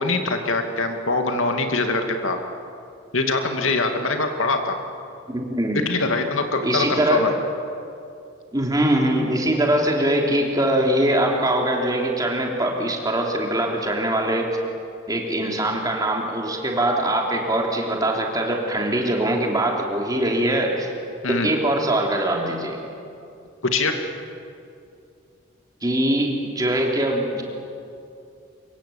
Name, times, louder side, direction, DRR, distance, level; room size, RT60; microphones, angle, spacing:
voice 1, 0.0-2.4 3.1-4.8 5.7-7.3 21.2-21.5 23.6-23.9, left 3 dB, 85° left, 5 dB, 2.4 m, -23 dB
voice 2, 5.3-5.8 6.6-7.2 8.5-14.5 15.1-20.9 21.3-22.8 25.8-27.4, right 1 dB, 20° right, 0 dB, 3.3 m, -22 dB
24.5 x 23.0 x 8.7 m, 2.6 s
head